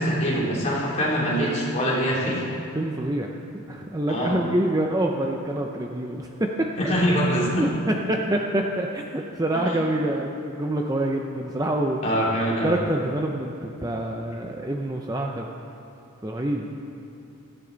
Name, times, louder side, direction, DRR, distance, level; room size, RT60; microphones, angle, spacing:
voice 1, 0.0-2.4 4.1-4.4 6.8-7.7 9.7-9.8 12.0-12.7, equal, 30° left, -6 dB, 3.1 m, -24 dB
voice 2, 2.7-3.3 3.7-6.9 7.6-12.0 12.6-15.5 16.2-16.9, right 1 dB, 15° right, 1 dB, 0.6 m, -26 dB
16.5 x 15.0 x 4.0 m, 2.7 s
head